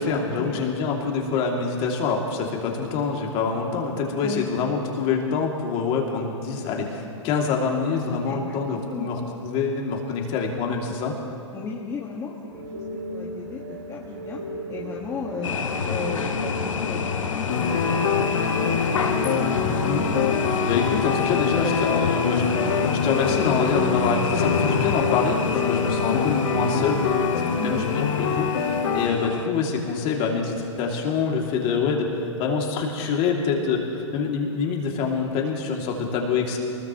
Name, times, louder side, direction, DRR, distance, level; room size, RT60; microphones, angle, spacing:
voice 1, 0.0-11.1 19.9-20.1 20.6-27.0 27.6-36.6, left 5 dB, 35° left, 0 dB, 2.5 m, -26 dB
voice 2, 8.3-8.6 8.9-9.2 11.5-12.3 13.1-14.4 14.7-15.5 15.8-17.6 17.8-18.9 27.6-27.9, left 5 dB, 20° left, -3 dB, 1.6 m, -35 dB
sound 1, 12.5-19.5, equal, 60° right, 3.0 m, -35 dB
sound 2, 15.4-29.5, left 5 dB, 90° left, 1.6 m, -29 dB
sound 3, 17.5-29.1, left 6 dB, 60° left, 4.2 m, -25 dB
23.0 x 20.0 x 3.0 m, 2.8 s
hypercardioid pair, 130°, 16 cm